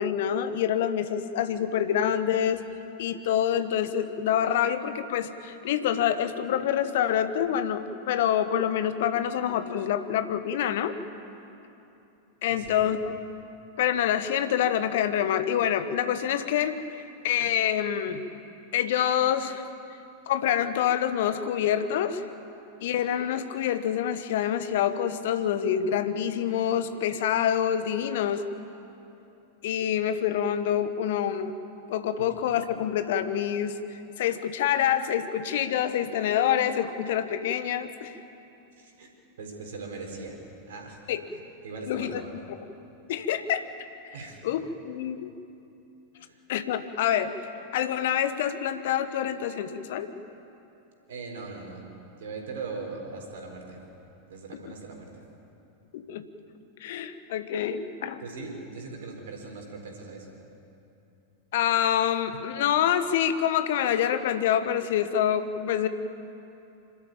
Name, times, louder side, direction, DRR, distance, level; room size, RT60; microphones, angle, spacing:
voice 1, 0.0-2.6 3.0-11.0 12.4-13.2 13.8-18.2 18.7-19.6 20.3-22.2 22.8-28.4 29.6-31.6 31.9-38.1 41.1-41.2 41.9-42.2 43.1-43.7 44.0-44.1 44.4-45.3 46.5-47.3 47.7-50.1 54.6-54.7 55.9-56.2 56.8-58.2 61.5-65.9, left 9 dB, 55° left, 11 dB, 1.2 m, -26 dB
voice 2, 12.5-12.8 38.8-39.1 39.4-41.0 41.3-42.3 44.1-44.4 46.2-46.4 51.1-51.8 52.2-53.8 54.3-55.2 58.2-60.3, right 4 dB, 60° right, 2 dB, 4.3 m, -40 dB
25.5 x 13.0 x 9.0 m, 2.8 s
figure-of-eight pair, 90°, 0 cm